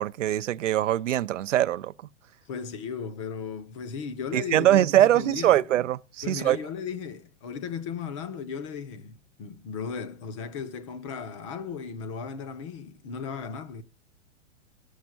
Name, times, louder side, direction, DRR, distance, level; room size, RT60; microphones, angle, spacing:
voice 1, 0.0-1.9 4.3-6.6, right 12 dB, 75° right, 0.6 m, -22 dB
voice 2, 2.5-5.6 6.2-13.8, left 6 dB, 25° left, 0.6 m, -36 dB
13.0 x 6.5 x 5.8 m
hypercardioid pair, 160°, 37 cm